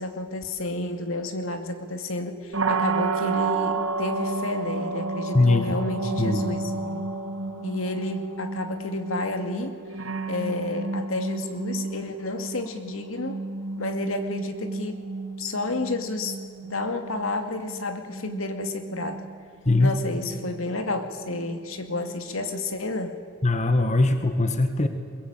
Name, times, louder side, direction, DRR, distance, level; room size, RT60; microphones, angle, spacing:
voice 1, 0.0-7.1 7.6-9.8 10.3-13.4 13.8-15.0 15.4-16.4 16.7-19.2 19.8-23.2, left 2 dB, 85° left, 7 dB, 2.5 m, -31 dB
sound 1, 2.5-22.3, right 3 dB, 75° right, 3.0 m, -32 dB
voice 2, 23.4-24.9, left 2 dB, 35° left, 8 dB, 1.7 m, -20 dB
22.5 x 22.5 x 8.9 m, 2.3 s
head